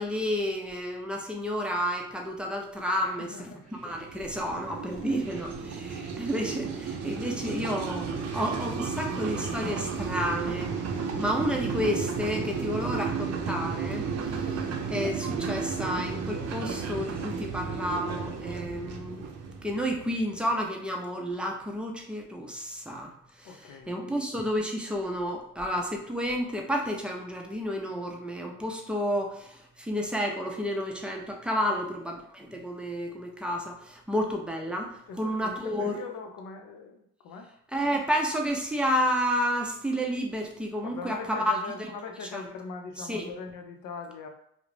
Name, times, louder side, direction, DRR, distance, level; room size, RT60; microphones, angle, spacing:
voice 1, 0.0-19.3 19.6-36.0 37.7-41.9 42.2-42.4 43.0-43.3, equal, 5° right, 1 dB, 0.4 m, -31 dB
voice 2, 3.0-3.7 5.0-5.5 9.1-9.3 14.4-14.6 23.4-24.0 35.1-37.5 40.9-44.3, left 4 dB, 80° left, 4 dB, 0.5 m, -41 dB
sound 1, 3.7-20.4, right 5 dB, 60° right, 0.5 m, -33 dB
2.4 x 2.0 x 3.1 m, 0.72 s
cardioid pair, 90°, 30 cm